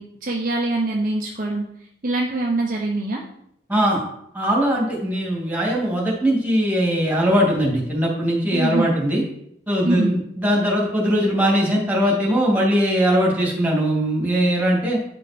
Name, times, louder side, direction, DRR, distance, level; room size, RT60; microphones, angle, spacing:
voice 1, 0.0-1.6 2.0-3.2 8.5-8.9 9.8-10.1, right 2 dB, 45° right, -2 dB, 1.1 m, -24 dB
voice 2, 3.7-4.0 4.3-9.2 9.7-15.0, equal, 10° right, -3 dB, 2.4 m, -20 dB
9.5 x 5.1 x 4.4 m, 0.73 s
head